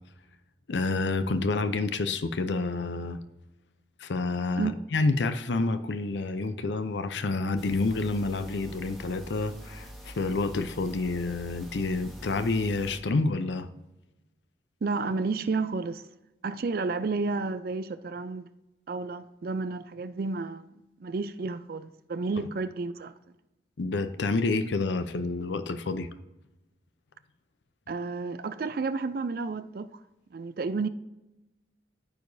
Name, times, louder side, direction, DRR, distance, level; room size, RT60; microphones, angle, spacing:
voice 1, 0.7-3.2 4.0-13.7 23.8-26.1, left 3 dB, 85° left, 0.6 m, -28 dB
sound 1, 7.6-13.0, equal, ahead, 1.2 m, -45 dB
voice 2, 14.8-16.1 16.4-18.5 18.9-20.7 21.0-23.1 27.9-30.0 30.3-30.9, right 4 dB, 55° right, 0.4 m, -31 dB
14.0 x 4.8 x 2.7 m
head